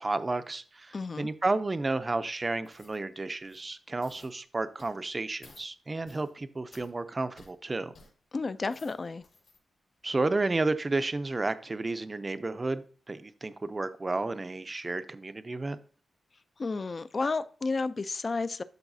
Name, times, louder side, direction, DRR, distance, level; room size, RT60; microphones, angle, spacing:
voice 1, 0.0-7.9 10.0-15.8, right 3 dB, 25° right, 11 dB, 0.5 m, -32 dB
voice 2, 0.9-1.3 8.3-9.2 16.6-18.6, left 3 dB, 40° left, 14 dB, 0.4 m, -32 dB
sound 1, 2.6-3.0 3.4-3.7 4.0-4.3 4.8-5.0 5.4-5.7 6.0-6.3 6.7-6.9 7.4-7.5 7.9-8.1 8.5-9.6 10.0-10.2, left 3 dB, 75° left, 3.5 m, -57 dB
12.0 x 4.0 x 2.6 m, 0.41 s
cardioid pair, 100°, 0 cm